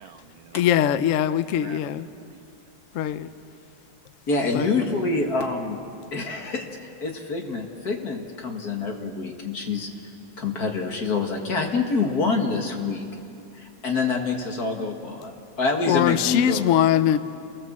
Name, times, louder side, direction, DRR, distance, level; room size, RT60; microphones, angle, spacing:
voice 1, 0.0-0.7 1.0-1.9 2.1-2.8, right 9 dB, 90° right, 6 dB, 1.6 m, -47 dB
voice 2, 0.5-2.1 2.9-3.3 4.5-4.7 15.9-17.2, left 10 dB, 75° left, 13 dB, 0.7 m, -21 dB
voice 3, 4.3-5.8 6.1-9.9 10.4-13.0 13.5-16.6, left 4 dB, 50° left, 2 dB, 2.4 m, -26 dB
29.5 x 19.0 x 7.5 m, 2.5 s
omnidirectional pair, 2.2 m